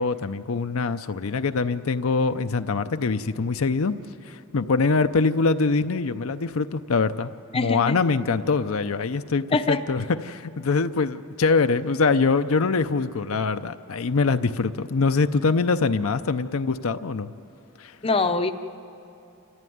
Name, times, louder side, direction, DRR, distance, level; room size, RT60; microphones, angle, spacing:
voice 1, 0.0-3.9 4.3-17.3 17.8-17.9, left 4 dB, 65° left, 9 dB, 0.6 m, -24 dB
voice 2, 7.5-8.0 9.5-9.8 18.0-18.5, left 3 dB, 25° left, 8 dB, 0.6 m, -23 dB
28.5 x 14.5 x 9.4 m, 2.7 s
head